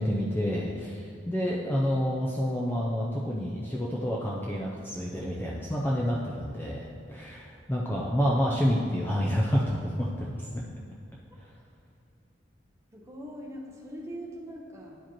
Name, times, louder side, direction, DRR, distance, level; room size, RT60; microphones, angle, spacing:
voice 1, 0.0-10.6 11.4-11.5, equal, 10° left, -4 dB, 0.4 m, -29 dB
voice 2, 12.9-15.0, equal, 15° right, -2 dB, 0.9 m, -42 dB
11.0 x 4.9 x 2.9 m, 2.6 s
head